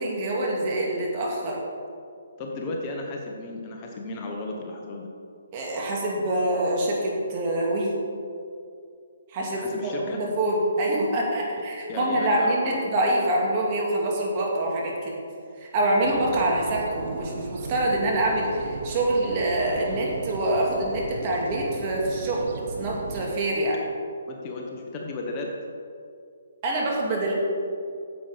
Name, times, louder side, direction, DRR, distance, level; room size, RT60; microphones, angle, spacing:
voice 1, 0.0-1.6 5.5-7.9 9.3-15.2 15.6-22.5 22.8-23.8 26.6-27.3, right 1 dB, 35° right, -2 dB, 2.4 m, -25 dB
voice 2, 2.4-5.1 9.5-10.2 11.9-12.8 24.3-25.5, left 2 dB, 30° left, 0 dB, 1.3 m, -34 dB
sound 1, 16.0-23.3, right 4 dB, 55° right, 0.8 m, -37 dB
9.5 x 8.0 x 5.1 m, 2.4 s
hypercardioid pair, 150°, 0 cm